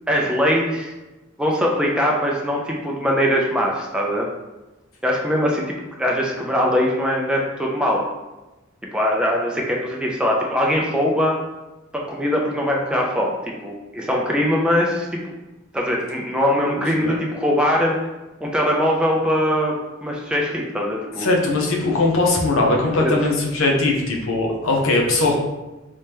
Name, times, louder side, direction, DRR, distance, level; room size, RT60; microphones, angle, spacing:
voice 1, 0.1-0.9 1.4-4.3 5.0-5.6 6.0-8.0 8.9-11.4 12.1-15.1 15.7-18.0 18.4-19.7 20.0-21.3 23.0-23.1, equal, 5° right, -2 dB, 0.3 m, -21 dB
voice 2, 21.2-25.3, left 2 dB, 80° left, -1 dB, 0.7 m, -20 dB
3.2 x 2.8 x 3.3 m, 1.1 s
head